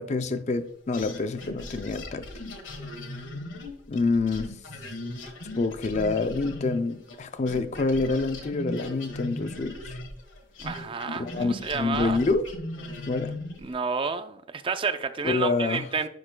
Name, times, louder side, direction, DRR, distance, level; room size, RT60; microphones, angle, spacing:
voice 1, 0.0-2.3 3.9-4.5 5.6-9.9 11.2-12.5 13.1-13.3 15.2-15.8, left 3 dB, 35° left, 0.4 m, -27 dB
sound 1, 0.9-7.2 7.5-13.7, left 1 dB, 80° left, 1.4 m, -38 dB
voice 2, 10.6-12.2 13.6-16.1, right 5 dB, 25° right, 0.4 m, -30 dB
10.0 x 6.5 x 2.2 m
head